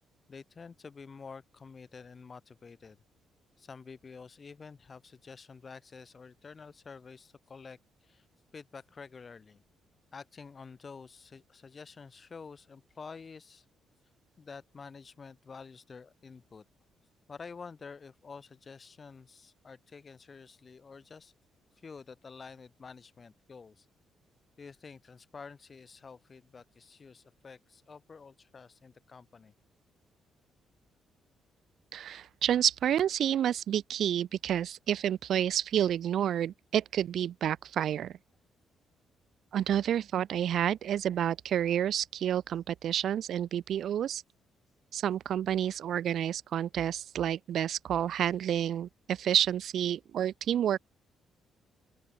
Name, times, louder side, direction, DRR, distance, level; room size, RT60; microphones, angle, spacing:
voice 1, 0.3-3.0 3.6-8.3 8.5-9.6 10.1-13.7 14.4-16.6 17.3-21.3 21.8-23.9 24.6-29.5, left 5 dB, 35° left, 3.8 m, -49 dB
voice 2, 31.9-38.1 39.5-44.2 44.9-50.8, right 10 dB, 70° right, 0.6 m, -29 dB
open air
cardioid pair, 90°, 0 cm